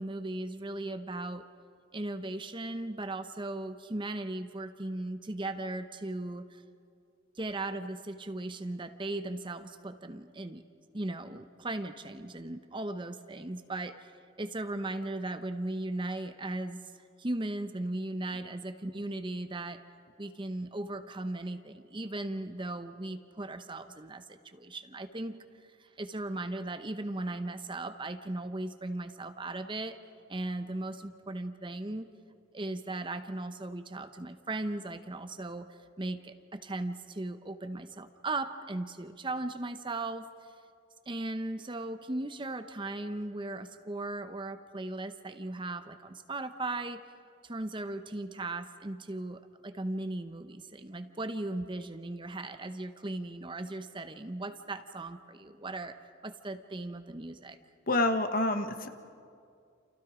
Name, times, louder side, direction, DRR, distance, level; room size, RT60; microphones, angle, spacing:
voice 1, 0.0-1.4 1.9-6.6 7.4-10.6 10.9-14.1 14.4-16.8 17.2-19.8 20.2-25.4 25.8-30.0 30.3-32.1 32.5-40.3 41.1-47.0 47.4-56.0 56.2-57.6, right 2 dB, 25° right, 9 dB, 0.8 m, -37 dB
voice 2, 57.9-58.9, left 2 dB, 50° left, 8 dB, 1.4 m, -27 dB
29.0 x 29.0 x 5.0 m, 2.3 s
head